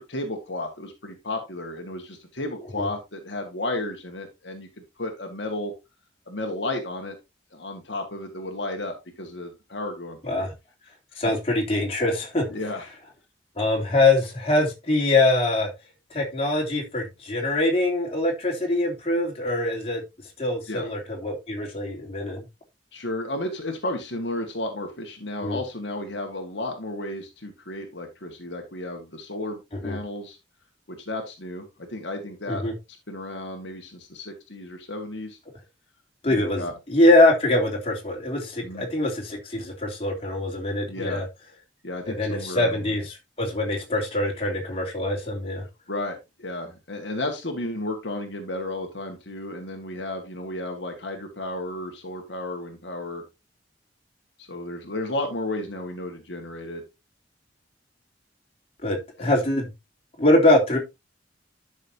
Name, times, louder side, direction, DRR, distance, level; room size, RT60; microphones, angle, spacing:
voice 1, 0.0-4.7 5.0-5.7 6.3-7.2 7.5-10.5 12.5-12.9 20.7-20.8 22.9-30.4 30.9-32.6 33.1-35.4 36.3-36.7 38.6-38.9 40.9-41.2 41.8-42.9 45.9-53.2 54.4-56.8 59.2-59.3, left 1 dB, 75° left, 1.9 m, -33 dB
voice 2, 11.2-12.4 13.6-15.7 16.1-20.0 20.4-22.4 25.4-25.6 29.8-30.0 32.5-32.7 36.2-41.2 42.1-45.6 58.8-59.7 60.2-60.8, left 2 dB, 30° left, 3.4 m, -23 dB
12.0 x 6.4 x 2.9 m
head